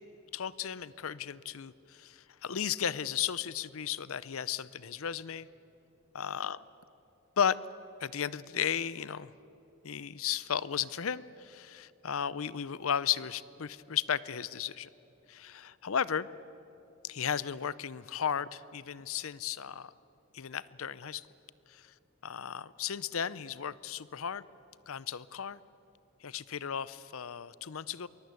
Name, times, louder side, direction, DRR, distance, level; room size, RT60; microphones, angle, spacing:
voice 1, 0.3-5.5 6.1-6.6 7.4-7.6 8.0-9.3 9.8-14.9 15.3-16.3 17.0-19.9 20.3-21.3 21.7-21.9 22.2-24.4 24.9-25.6 26.2-28.1, left 8 dB, 75° left, 18 dB, 0.6 m, -35 dB
23.0 x 21.0 x 8.3 m, 3.0 s
head